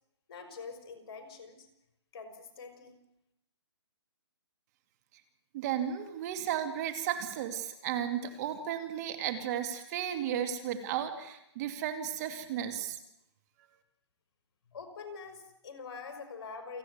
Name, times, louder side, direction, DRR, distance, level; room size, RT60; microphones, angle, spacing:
voice 1, 0.3-1.7 2.1-3.0 14.7-16.8, left 5 dB, 55° left, 7 dB, 5.1 m, -45 dB
voice 2, 5.5-13.0, right 10 dB, 35° right, 7 dB, 2.5 m, -34 dB
28.0 x 9.7 x 9.5 m, 0.84 s
hypercardioid pair, 140°, 15 cm